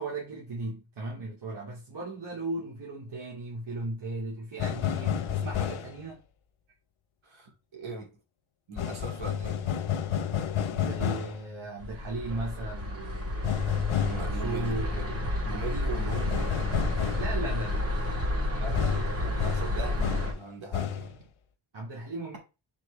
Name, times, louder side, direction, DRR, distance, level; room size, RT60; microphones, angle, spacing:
voice 1, 0.0-6.2 10.7-15.1 17.1-18.3 21.7-22.4, right 2 dB, 55° right, 2.5 m, -37 dB
sound 1, 4.6-6.0 8.8-11.4 13.4-14.3 16.1-17.4 18.7-20.4 20.7-21.1, left 9 dB, 85° left, 1.0 m, -30 dB
voice 2, 7.2-8.1 8.7-9.8 14.0-16.9 18.6-21.3, right 3 dB, 75° right, 2.8 m, -40 dB
sound 2, 11.8-20.3, left 1 dB, 30° right, 1.9 m, -31 dB
6.8 x 4.7 x 3.4 m
wide cardioid pair, 150°, 48 cm